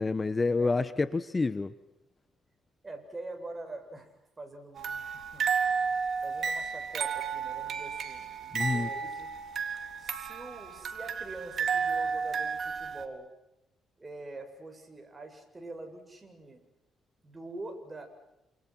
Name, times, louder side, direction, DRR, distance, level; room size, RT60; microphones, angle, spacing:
voice 1, 0.0-1.7 8.5-8.9, left 3 dB, 25° left, 13 dB, 1.2 m, -28 dB
voice 2, 2.8-5.9 6.2-9.3 10.0-13.3 14.0-16.6 17.2-18.1, right 2 dB, 25° right, 5 dB, 7.9 m, -45 dB
sound 1, 4.8-13.0, right 6 dB, 55° right, 3.5 m, -32 dB
29.5 x 28.0 x 6.2 m, 0.93 s
cardioid pair, 90°, 0 cm